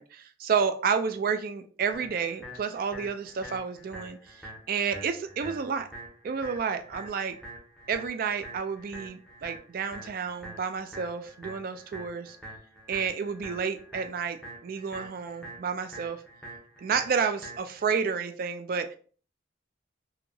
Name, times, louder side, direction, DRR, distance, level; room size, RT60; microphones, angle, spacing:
voice 1, 0.0-5.9 6.2-7.4 7.9-12.4 12.9-16.2 16.8-19.0, right 6 dB, 50° right, 8 dB, 0.3 m, -30 dB
sound 1, 1.9-17.9, right 1 dB, ahead, 0.8 m, -45 dB
2.9 x 2.6 x 2.6 m, 0.42 s
head